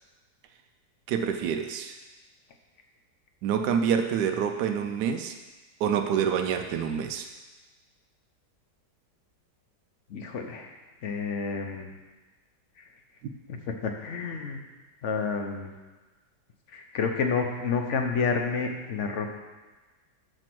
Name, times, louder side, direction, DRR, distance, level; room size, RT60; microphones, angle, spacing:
voice 1, 1.1-1.9 3.4-5.4 5.8-7.3, right 7 dB, 85° right, 5 dB, 1.2 m, -27 dB
voice 2, 10.1-10.8 11.0-11.9 13.5-13.6 13.8-14.6 15.0-15.7 16.7-19.3, left 5 dB, 55° left, 4 dB, 1.0 m, -29 dB
7.7 x 4.5 x 6.0 m, 1.3 s
omnidirectional pair, 1.8 m